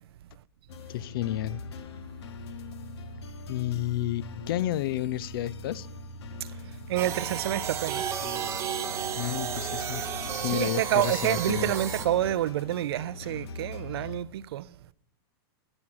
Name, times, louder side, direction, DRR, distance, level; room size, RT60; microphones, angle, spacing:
sound 1, 0.7-14.2, left 2 dB, 85° left, 1.2 m, -41 dB
voice 1, 0.9-1.6 3.5-5.9 9.2-10.0 10.3-11.7, left 13 dB, 60° left, 0.4 m, -31 dB
voice 2, 6.9-8.1 10.5-14.7, right 13 dB, 75° right, 0.4 m, -28 dB
sound 2, 7.0-12.1, right 8 dB, 20° right, 1.0 m, -33 dB
9.8 x 7.3 x 7.7 m
supercardioid pair, 155°, 13 cm